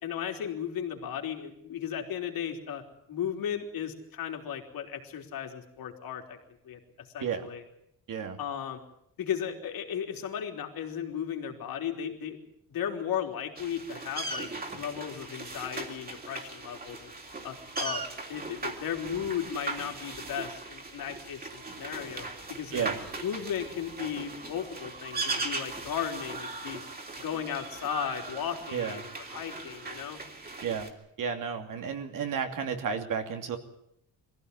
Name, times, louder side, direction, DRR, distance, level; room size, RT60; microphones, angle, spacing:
voice 1, 0.0-2.8 3.1-6.4 6.6-7.6 8.4-8.8 9.2-12.4 12.7-14.5 14.8-17.1 17.4-18.0 18.3-22.9 23.2-26.8 27.2-30.2, left 9 dB, 75° left, 3 dB, 3.7 m, -35 dB
sound 1, 13.6-30.9, right 3 dB, 25° right, 3.2 m, -39 dB
voice 2, 28.7-29.0 30.6-30.9 31.2-33.6, right 7 dB, 65° right, 5 dB, 2.8 m, -32 dB
22.5 x 15.5 x 9.8 m, 0.78 s
cardioid pair, 140°, 35 cm